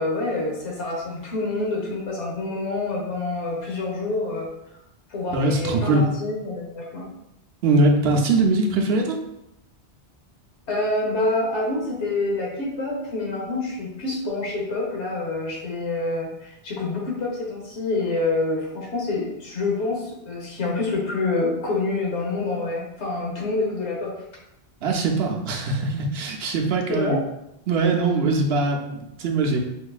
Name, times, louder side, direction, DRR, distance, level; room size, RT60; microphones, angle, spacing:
voice 1, 0.0-4.5 5.1-7.1 10.7-24.1 26.9-27.2, left 2 dB, 80° left, -3 dB, 1.3 m, -27 dB
voice 2, 5.3-6.0 7.6-9.2 24.8-27.2 27.7-29.6, right 3 dB, 70° right, 2 dB, 0.8 m, -21 dB
4.4 x 2.5 x 2.3 m, 0.84 s
omnidirectional pair, 1.1 m